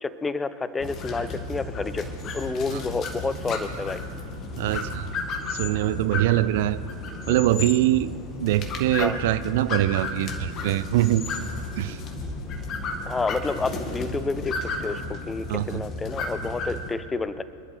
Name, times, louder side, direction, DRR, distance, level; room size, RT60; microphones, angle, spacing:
voice 1, 0.0-4.0 7.3-7.4 9.0-9.2 13.1-14.5 14.8-17.4, left 3 dB, 15° left, 14 dB, 0.6 m, -29 dB
sound 1, 0.8-16.9, left 3 dB, 30° left, 2.0 m, -33 dB
voice 2, 4.6-5.1 5.5-6.8 7.3-8.1 8.4-11.3 11.8-12.0 15.5-15.8, right 14 dB, 50° right, 16 dB, 0.4 m, -23 dB
26.5 x 11.5 x 3.4 m, 2.6 s
figure-of-eight pair, 90°, 0 cm